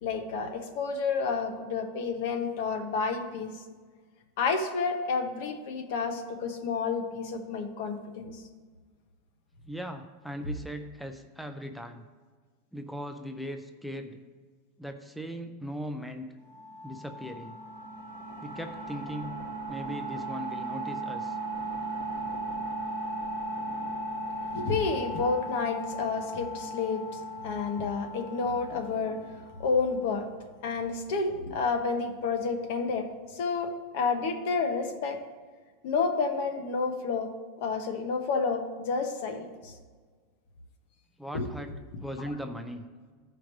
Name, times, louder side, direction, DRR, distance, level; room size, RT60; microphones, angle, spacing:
voice 1, 0.0-3.5 4.4-8.4 24.5-29.2 29.6-30.3 30.6-33.1 33.3-35.2 35.8-37.3 37.6-39.7 41.3-41.5, left 4 dB, 50° left, 6 dB, 1.0 m, -30 dB
voice 2, 9.7-12.0 12.7-14.2 14.8-16.3 16.8-17.6 18.4-19.4 19.7-21.4 41.2-42.9, equal, ahead, 7 dB, 0.3 m, -39 dB
sound 1, 16.5-30.0, right 1 dB, 80° left, 2.8 m, -37 dB
15.0 x 5.0 x 3.1 m, 1.5 s
supercardioid pair, 175°, 0 cm